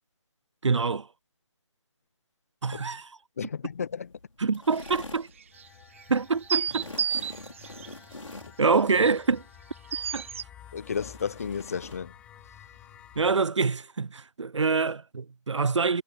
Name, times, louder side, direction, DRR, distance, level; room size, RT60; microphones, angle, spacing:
voice 1, 0.6-1.1 2.6-3.1 4.4-5.3 6.1-6.8 8.6-9.4 10.1-10.2 13.2-16.0, right 4 dB, 65° right, 0.5 m, -25 dB
voice 2, 3.4-4.1 10.7-12.1, left 6 dB, 30° left, 0.8 m, -33 dB
sound 1, 3.7-13.2, left 2 dB, 80° left, 4.8 m, -47 dB
sound 2, 4.9-5.0 5.4-5.6 6.0-6.1 6.3-7.9 9.2-9.3 9.9-10.4, right 8 dB, 25° right, 1.1 m, -30 dB
sound 3, 5.5-13.3, left 10 dB, 5° left, 1.8 m, -52 dB
figure-of-eight pair, 155°, 16 cm